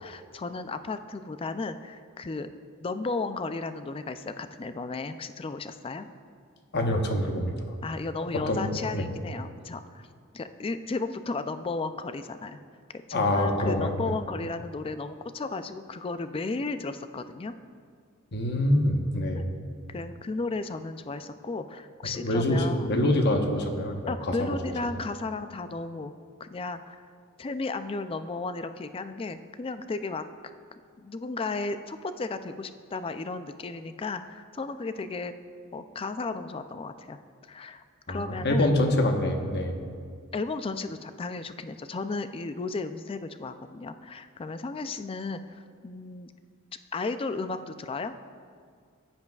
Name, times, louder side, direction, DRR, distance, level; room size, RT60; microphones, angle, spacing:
voice 1, 0.0-2.5 2.8-6.1 7.8-10.1 10.3-12.6 13.1-17.5 19.3-19.5 19.9-22.9 24.1-27.0 27.4-30.5 31.0-35.3 35.7-37.2 37.5-38.7 40.3-46.3 46.9-48.2, left 3 dB, 25° left, 10 dB, 0.4 m, -34 dB
voice 2, 6.7-7.5 8.2-9.0 13.1-14.1 18.3-19.5 22.1-24.3 38.1-39.7, left 1 dB, 50° left, 3 dB, 1.1 m, -25 dB
15.0 x 10.5 x 2.4 m, 2.1 s
head